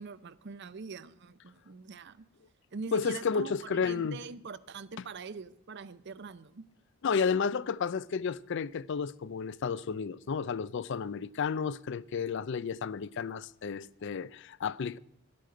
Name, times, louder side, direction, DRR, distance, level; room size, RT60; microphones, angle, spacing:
voice 1, 0.0-2.3 2.7-6.6, right 4 dB, 55° right, 0.6 m, -43 dB
voice 2, 2.9-4.2 7.0-15.0, left 6 dB, 55° left, 0.4 m, -32 dB
12.0 x 8.5 x 7.7 m
head